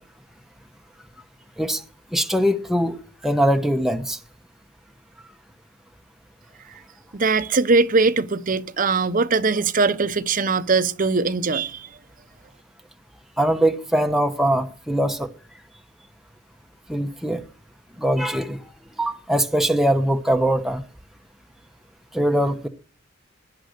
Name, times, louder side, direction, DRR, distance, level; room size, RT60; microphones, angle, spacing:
voice 1, 2.1-3.0 3.2-4.2 13.4-15.3 16.9-17.4 18.0-18.6 19.0-20.8 22.1-22.7, right 1 dB, ahead, 1.0 m, -21 dB
voice 2, 7.1-11.9, right 4 dB, 40° right, 0.7 m, -21 dB
18.0 x 10.0 x 6.6 m
head